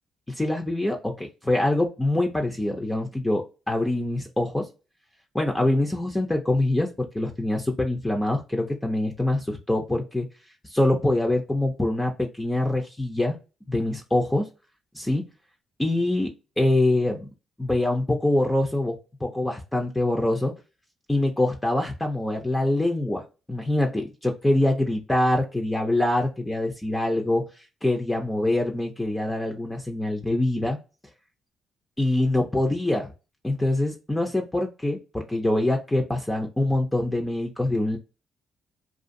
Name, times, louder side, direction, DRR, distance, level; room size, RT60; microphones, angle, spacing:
voice 1, 0.4-4.7 5.3-10.3 10.6-13.4 13.7-14.4 14.9-15.2 15.8-16.3 16.6-17.3 17.6-19.0 19.2-20.5 21.1-27.4 27.8-30.8 32.0-33.1 33.4-38.0, left 1 dB, 10° left, 2 dB, 0.5 m, -24 dB
2.5 x 2.4 x 2.5 m, 0.30 s
cardioid pair, 90°, 0 cm